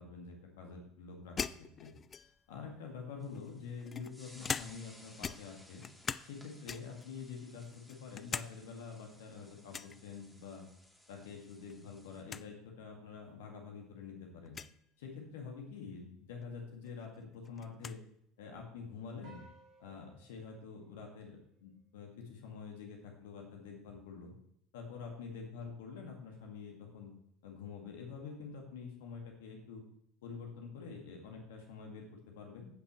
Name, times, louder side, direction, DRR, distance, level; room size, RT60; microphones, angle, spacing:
voice 1, 0.0-1.5 1.8-1.9 2.5-5.8 6.2-10.6 11.1-14.6 15.0-18.0 18.4-19.4 19.8-24.3 24.7-27.1 27.4-29.8 30.2-32.7, left 5 dB, 70° left, 1 dB, 1.9 m, -47 dB
sound 1, 1.4-2.5 3.3-5.0 5.2-6.3 6.7-7.1 7.5-8.5 8.8-8.9 9.7-10.0 11.4-11.7 12.0-12.1 12.3-12.5 13.3-13.4 14.5-14.7 16.4-16.5 16.8-18.0, left 6 dB, 30° left, 0.3 m, -41 dB
sound 2, 3.2-12.2, equal, 5° left, 2.3 m, -60 dB
sound 3, 19.2-21.8, right 3 dB, 55° right, 3.3 m, -61 dB
15.5 x 5.7 x 3.1 m, 0.71 s
figure-of-eight pair, 70°, 0 cm